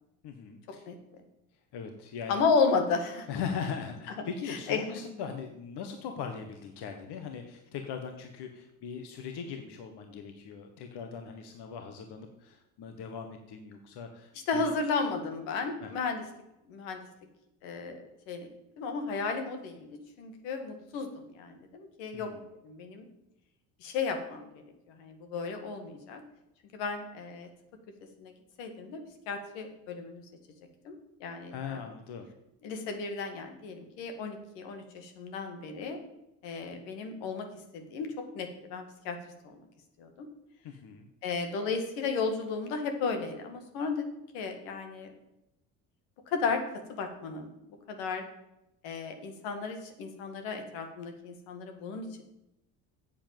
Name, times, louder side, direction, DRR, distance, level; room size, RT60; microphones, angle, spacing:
voice 1, 0.2-0.9 1.7-2.4 3.3-14.7 15.8-15.9 22.1-22.4 31.5-32.3 40.6-41.1, left 6 dB, 65° left, 5 dB, 1.5 m, -40 dB
voice 2, 2.3-3.3 4.5-4.8 14.5-16.2 16.7-17.1 17.6-18.5 18.8-22.3 22.6-23.1 23.8-24.6 25.0-26.2 26.7-27.5 28.2-28.3 28.6-30.2 30.8-31.0 31.2-31.8 32.6-36.0 36.4-37.5 37.7-39.2 39.4-39.6 40.0-40.3 41.2-44.1 44.3-45.1 46.3-46.6 46.9-47.5 47.9-48.2 48.8-52.2, left 4 dB, 85° left, 6 dB, 2.0 m, -33 dB
8.4 x 7.9 x 7.7 m, 0.87 s
supercardioid pair, 85°, 43 cm